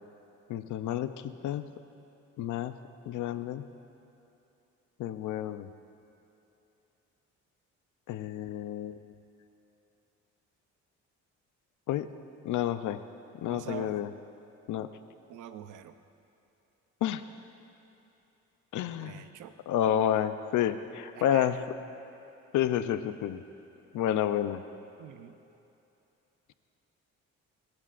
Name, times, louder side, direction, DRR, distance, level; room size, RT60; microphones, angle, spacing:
voice 1, 0.5-1.7 2.4-2.7 3.1-3.6 5.0-5.7 8.1-9.0 11.9-12.1 12.4-13.0 13.4-14.1 14.7-14.9 17.0-17.2 18.7-19.3 19.7-21.6 22.5-23.4 23.9-24.6, left 11 dB, 80° left, 11 dB, 0.7 m, -30 dB
voice 2, 13.5-14.0 15.3-16.0 19.0-19.5 19.9-20.1 21.1-21.5 25.0-25.3, right 11 dB, 85° right, 10 dB, 0.7 m, -44 dB
29.5 x 12.0 x 2.5 m, 2.8 s
cardioid pair, 90°, 30 cm